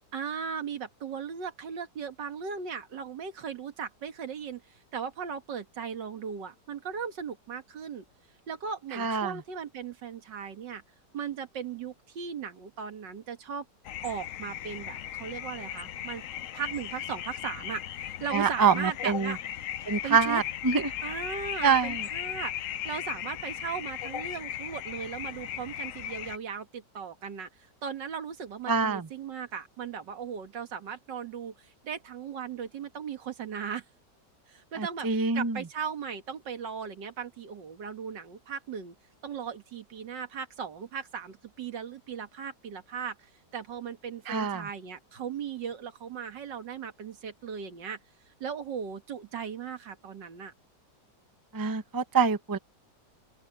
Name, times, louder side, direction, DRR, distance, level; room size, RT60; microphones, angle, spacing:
voice 1, 0.1-8.0 8.5-10.8 11.1-13.7 14.0-16.2 16.5-19.4 20.0-20.4 21.0-33.8 34.5-39.0 39.2-48.0 48.4-50.5, right 7 dB, 80° right, 2.3 m, -37 dB
voice 2, 8.9-9.3 18.3-19.3 19.9-20.9 21.6-22.1 28.7-29.1 34.8-35.6 44.3-44.7 51.5-52.6, right 5 dB, 15° right, 0.7 m, -26 dB
sound 1, 13.8-26.4, left 11 dB, 60° left, 0.9 m, -37 dB
open air
omnidirectional pair, 1.9 m